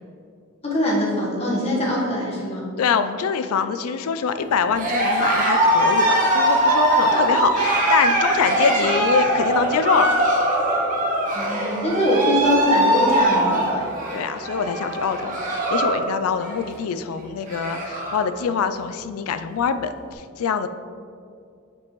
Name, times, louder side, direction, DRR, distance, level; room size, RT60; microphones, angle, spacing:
voice 1, 0.6-2.7 11.3-13.9, left 1 dB, 30° left, -4 dB, 1.3 m, -22 dB
voice 2, 2.8-10.2 14.1-20.7, left 6 dB, 80° left, 11 dB, 0.4 m, -24 dB
Cheering, 4.7-16.0 16.3-16.7 17.1-17.2 17.4-18.2, right 1 dB, 40° right, 1.0 m, -21 dB
8.1 x 5.2 x 3.0 m, 2.4 s
head